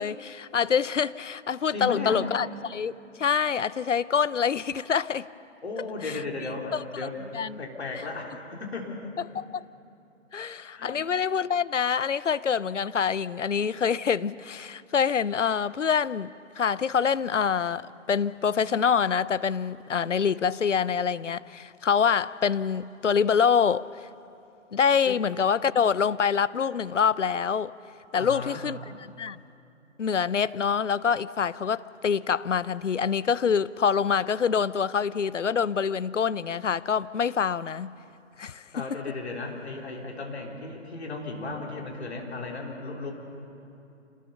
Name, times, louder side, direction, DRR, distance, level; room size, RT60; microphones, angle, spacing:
voice 1, 0.0-5.3 6.0-6.1 6.7-6.8 7.3-7.6 9.3-9.7 10.3-24.1 24.7-27.7 28.1-29.4 30.0-37.9 38.4-38.8, left 6 dB, 70° left, 0.6 m, -26 dB
voice 2, 1.7-2.2 5.6-7.2 7.6-9.1 10.8-11.0 25.1-25.2 28.1-28.6 38.7-43.1, left 3 dB, 55° left, 3.6 m, -35 dB
27.0 x 19.5 x 5.6 m
figure-of-eight pair, 145°, 38 cm